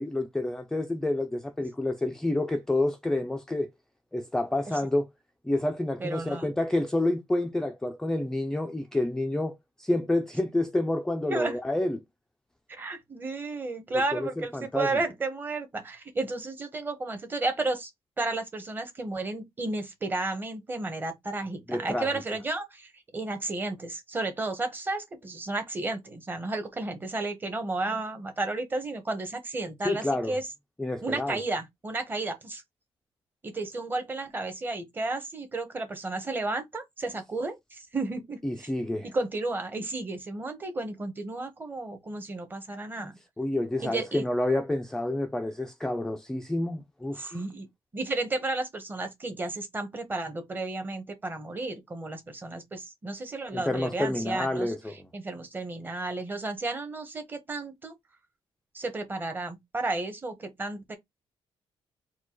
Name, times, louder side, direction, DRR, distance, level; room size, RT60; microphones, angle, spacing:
voice 1, 0.0-3.7 4.1-5.1 5.4-12.0 14.1-15.0 21.7-22.1 29.8-30.4 30.8-31.4 38.4-39.1 43.4-47.4 53.5-55.1, left 1 dB, 5° left, 0.4 m, -29 dB
voice 2, 6.0-6.5 11.3-11.6 12.7-17.9 18.2-30.5 31.0-32.6 33.4-38.7 39.1-43.1 43.8-44.2 47.2-47.7 47.9-54.7 55.1-57.9 58.7-61.0, right 2 dB, 20° right, 1.1 m, -33 dB
4.4 x 2.2 x 4.4 m
cardioid pair, 165°, 10 cm